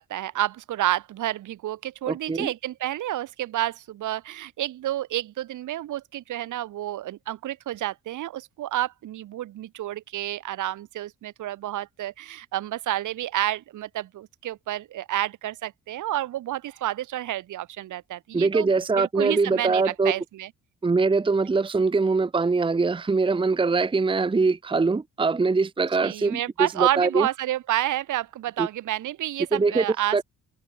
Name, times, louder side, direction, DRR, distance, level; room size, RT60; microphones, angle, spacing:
voice 1, 0.0-20.5 26.0-30.2, right 13 dB, 80° right, 4.3 m, -30 dB
voice 2, 2.1-2.5 18.3-20.2 20.8-26.4 26.8-27.3 28.6-28.7 29.5-29.8 30.1-30.2, right 4 dB, 15° right, 0.9 m, -22 dB
cardioid pair, 90°, 30 cm